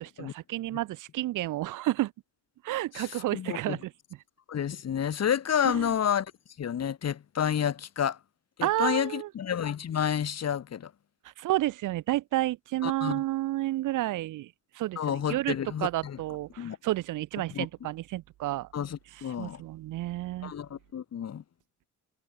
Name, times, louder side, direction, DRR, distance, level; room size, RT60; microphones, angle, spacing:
voice 1, 0.0-2.1 2.6-3.9 5.6-5.9 8.6-9.3 11.4-18.7 19.4-20.5, right 16 dB, 90° right, 3.9 m, -31 dB
voice 2, 3.3-3.8 4.5-6.3 6.6-8.2 8.6-10.9 12.8-13.2 15.0-16.2 16.6-16.8 17.5-17.7 18.7-19.6 20.4-21.4, left 8 dB, 55° left, 5.7 m, -30 dB
cardioid pair, 90°, 30 cm